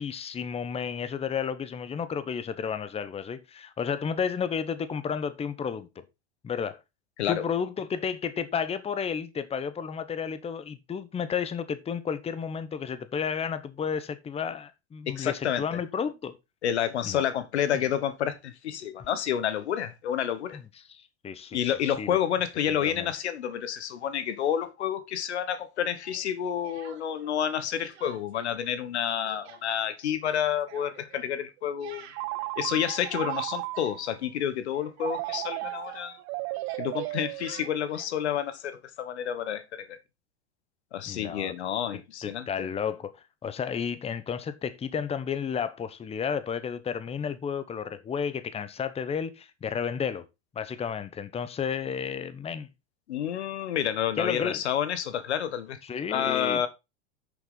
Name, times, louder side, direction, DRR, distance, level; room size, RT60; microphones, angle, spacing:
voice 1, 0.0-6.0 6.4-6.8 7.3-16.3 17.0-17.4 17.7-17.8 20.5-20.6 20.9-22.2 22.7-23.1 41.1-41.5 42.2-43.1 43.4-50.3 50.5-52.7 54.2-54.6 55.8-56.7, left 7 dB, 20° left, 1.0 m, -32 dB
voice 2, 15.1-15.6 16.6-20.6 21.5-32.1 32.6-36.2 36.8-40.0 40.9-42.7 53.1-55.8 56.1-56.7, left 9 dB, 80° left, 1.4 m, -29 dB
Speech, 26.0-27.4 27.7-28.5 28.8-34.5 34.7-38.2, right 10 dB, 70° right, 1.9 m, -50 dB
Telephone, 32.1-34.1 35.0-38.0, right 21 dB, 40° right, 0.4 m, -35 dB
8.2 x 6.9 x 3.9 m
hypercardioid pair, 105°, 33 cm